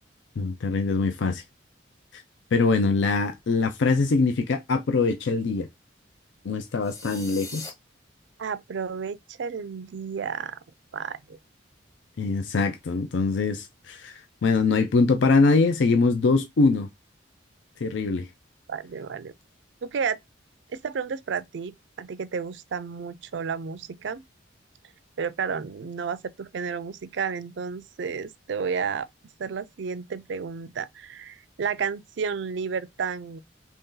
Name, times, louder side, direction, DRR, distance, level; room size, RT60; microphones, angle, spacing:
voice 1, 0.4-1.4 2.1-2.2 2.5-5.7 6.5-7.7 12.2-16.9 17.8-18.3, left 3 dB, 65° left, 0.4 m, -23 dB
sound 1, 6.8-7.7, left 2 dB, 15° left, 0.9 m, -40 dB
voice 2, 8.4-10.6 10.9-11.4 18.7-19.3 19.8-20.2 20.7-24.2 25.2-29.1 29.4-33.4, right 6 dB, 65° right, 0.4 m, -32 dB
3.0 x 2.7 x 3.7 m
head